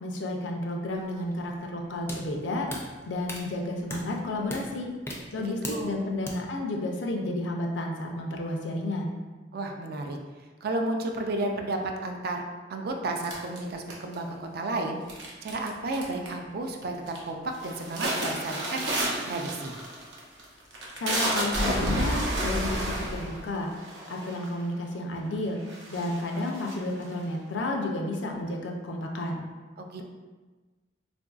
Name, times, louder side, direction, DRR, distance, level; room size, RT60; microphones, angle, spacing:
voice 1, 0.0-2.7 3.1-4.9 5.3-9.1 21.0-23.7 24.1-25.6 25.9-29.4, left 1 dB, 80° left, 1 dB, 0.5 m, -31 dB
sound 1, 0.9-6.3, left 1 dB, 15° left, 0.4 m, -40 dB
voice 2, 5.4-6.0 9.5-10.2 10.6-12.4 12.7-18.9 19.3-19.7 29.8-30.0, right 2 dB, 55° right, 3 dB, 0.4 m, -32 dB
sound 2, 13.2-14.3 15.1-15.7 15.9-16.4 16.8-17.2 17.5-24.6 25.3-25.4 25.6-27.2, right 1 dB, 85° right, 0.7 m, -30 dB
3.7 x 2.5 x 2.3 m, 1.3 s
head